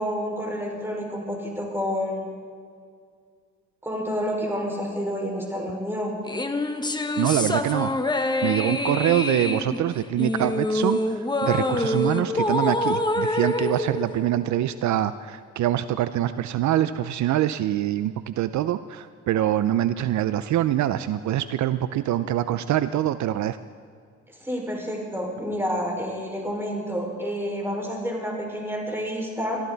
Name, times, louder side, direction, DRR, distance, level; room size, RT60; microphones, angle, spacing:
voice 1, 0.0-2.2 3.8-6.1 24.4-29.6, equal, 10° right, -1 dB, 5.1 m, -29 dB
sound 1, 6.3-14.9, left 2 dB, 15° left, 1.1 m, -26 dB
voice 2, 7.2-8.0 8.4-11.0 11.4-23.6, right 12 dB, 70° right, 13 dB, 0.6 m, -24 dB
23.5 x 14.0 x 4.1 m, 2.2 s
cardioid pair, 90°, 30 cm